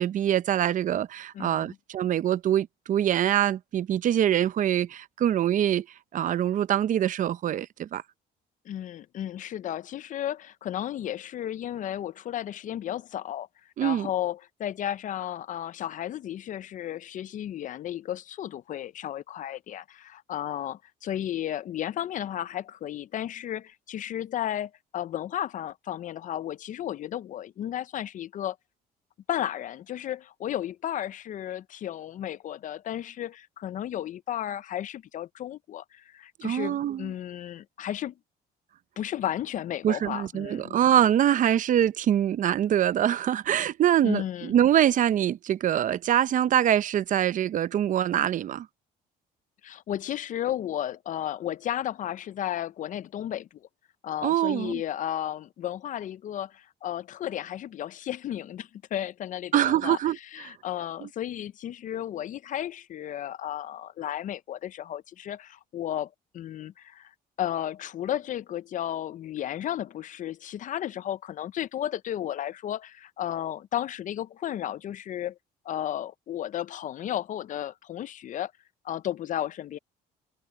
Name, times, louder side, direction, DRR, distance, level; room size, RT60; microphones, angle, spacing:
voice 1, 0.0-5.9 6.1-8.0 13.8-14.1 36.4-37.1 39.8-48.7 54.2-54.8 59.5-60.2 60.4-60.5 61.0-61.1, right 11 dB, 50° right, 0.7 m, -24 dB
voice 2, 1.3-1.8 8.7-13.5 13.8-28.6 29.3-38.1 39.0-40.8 44.0-44.6 49.6-53.7 54.0-60.0 60.3-67.1 67.4-75.4 75.6-78.5 78.8-79.8, left 11 dB, 50° left, 0.5 m, -33 dB
cardioid pair, 110°, 17 cm